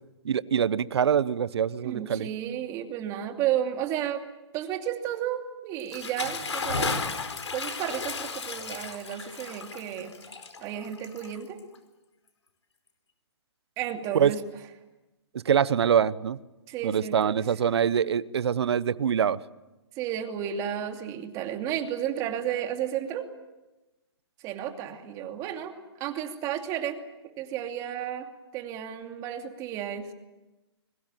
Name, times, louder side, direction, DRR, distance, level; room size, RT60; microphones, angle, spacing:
voice 1, 0.2-2.3 14.1-14.3 15.3-16.4 16.8-19.4, right 8 dB, 65° right, 18 dB, 0.9 m, -24 dB
voice 2, 1.8-4.2 4.5-7.0 7.5-10.1 10.6-11.6 13.8-14.4 16.7-17.4 20.0-23.3 24.4-27.0 27.4-28.3 28.5-30.1, right 10 dB, 20° right, 5 dB, 2.7 m, -32 dB
Bathtub (filling or washing) / Splash splatter, 5.8-11.7, left 4 dB, 85° left, 4.8 m, -34 dB
25.0 x 23.0 x 9.1 m, 1.0 s
hypercardioid pair, 155°, 15 cm